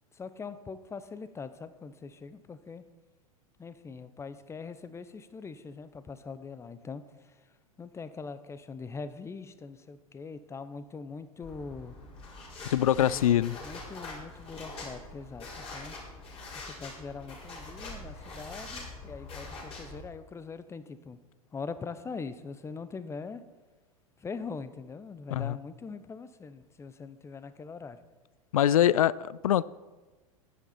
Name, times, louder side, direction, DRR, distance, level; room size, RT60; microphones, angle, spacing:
voice 1, 0.1-2.8 3.6-7.0 7.8-12.0 13.0-16.0 16.8-21.2 21.5-23.4 24.2-28.0, left 4 dB, 15° left, 0.8 m, -42 dB
sound 1, 11.4-20.0, left 2 dB, 30° left, 4.9 m, -44 dB
voice 2, 12.7-13.6 25.3-25.6 28.5-29.6, left 11 dB, 70° left, 0.4 m, -24 dB
15.0 x 10.5 x 4.3 m
figure-of-eight pair, 90°, 19 cm